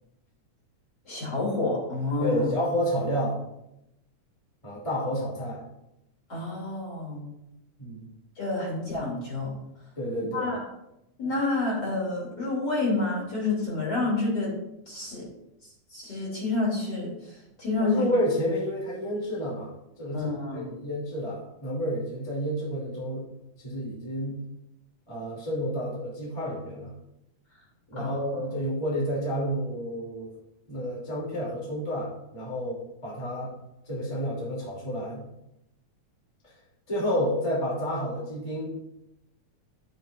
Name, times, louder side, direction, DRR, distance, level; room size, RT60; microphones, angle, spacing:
voice 1, 1.1-2.5 6.3-7.2 8.4-9.5 10.3-10.6 11.2-14.6 14.9-15.2 15.9-18.0 20.1-20.7 28.0-28.2 28.5-28.6, left 2 dB, 35° left, -5 dB, 3.2 m, -29 dB
voice 2, 2.2-3.4 4.6-5.6 7.8-8.0 10.0-10.5 17.8-19.7 20.0-23.3 23.6-24.4 25.1-26.9 27.9-30.3 30.7-33.5 33.9-35.2 36.4-36.5 36.9-38.8, equal, 10° left, -6 dB, 2.5 m, -30 dB
12.0 x 9.0 x 2.5 m, 0.84 s
omnidirectional pair, 3.6 m